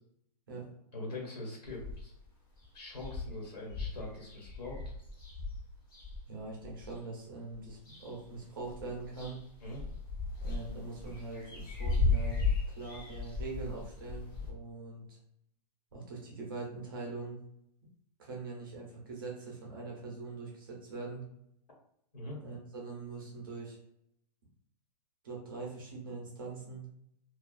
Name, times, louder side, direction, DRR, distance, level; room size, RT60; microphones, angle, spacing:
voice 1, 0.9-2.1 2.7-4.8 9.6-9.8 22.1-22.4, left 2 dB, 75° left, -2 dB, 1.3 m, -42 dB
sound 1, 1.7-2.3 2.6-2.7 2.9-7.0 7.5-8.4 8.6-14.5, left 3 dB, 30° left, 0.6 m, -36 dB
voice 2, 6.3-9.4 10.4-15.2 15.9-17.4 18.2-21.2 22.4-23.8 25.2-26.9, right 3 dB, 35° right, -2 dB, 0.6 m, -43 dB
2.3 x 2.3 x 2.4 m, 0.75 s
hypercardioid pair, 175°, 21 cm